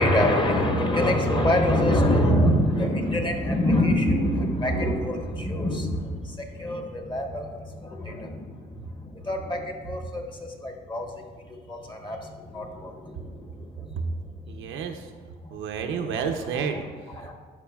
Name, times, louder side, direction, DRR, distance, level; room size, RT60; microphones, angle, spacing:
voice 1, 0.0-11.1 11.5-13.9 17.2-17.3, left 1 dB, 25° left, 3 dB, 1.1 m, -25 dB
voice 2, 14.5-15.1 15.5-17.3, right 6 dB, 85° right, 5 dB, 0.6 m, -31 dB
12.0 x 4.7 x 2.3 m, 1.5 s
cardioid pair, 90°, 20 cm